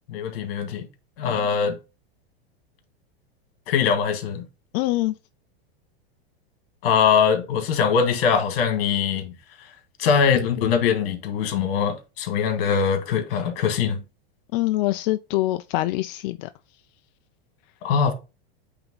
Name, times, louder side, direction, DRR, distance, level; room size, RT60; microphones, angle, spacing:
voice 1, 0.1-0.9 1.2-1.8 3.7-4.4 6.8-9.3 10.0-14.0 17.8-18.1, left 6 dB, 65° left, 2.1 m, -22 dB
voice 2, 4.7-5.1 14.5-16.5, left 18 dB, 50° left, 0.4 m, -24 dB
8.7 x 3.6 x 3.8 m
supercardioid pair, 140°, 31 cm